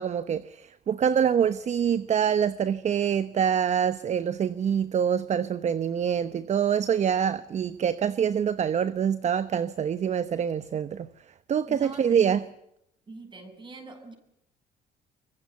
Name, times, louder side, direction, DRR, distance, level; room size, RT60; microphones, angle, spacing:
voice 1, 0.0-11.1 11.5-12.4, right 8 dB, 45° right, 1.0 m, -25 dB
voice 2, 11.7-12.4 13.1-14.1, right 3 dB, 30° right, 7.3 m, -42 dB
25.0 x 22.5 x 8.3 m
cardioid pair, 110°, 17 cm